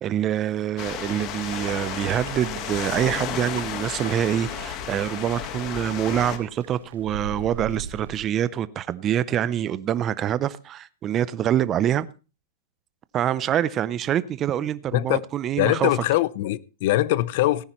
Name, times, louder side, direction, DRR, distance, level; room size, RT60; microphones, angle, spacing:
voice 1, 0.0-12.1 13.1-15.9, right 10 dB, 20° right, 0.5 m, -25 dB
sound 1, 0.8-6.4, left 9 dB, 30° left, 1.4 m, -33 dB
sound 2, 1.5-8.3, right 8 dB, 85° right, 0.8 m, -40 dB
voice 2, 15.6-17.7, left 15 dB, 45° left, 0.6 m, -22 dB
17.5 x 9.8 x 3.1 m
supercardioid pair, 160°, 0 cm